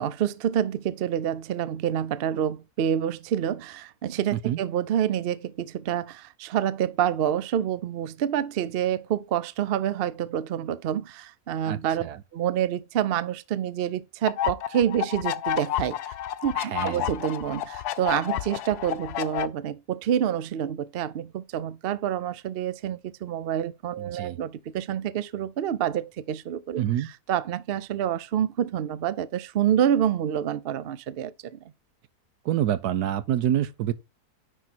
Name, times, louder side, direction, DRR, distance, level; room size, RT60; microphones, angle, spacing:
voice 1, 0.0-12.0 12.3-16.1 16.4-31.3, right 10 dB, 65° right, 0.5 m, -27 dB
voice 2, 11.6-12.2 16.5-17.1 24.0-24.4 26.8-27.1 32.4-33.9, right 11 dB, 80° right, 1.2 m, -27 dB
sound 1, 14.3-19.5, left 11 dB, 85° left, 1.1 m, -30 dB
10.0 x 4.0 x 4.3 m
omnidirectional pair, 1.7 m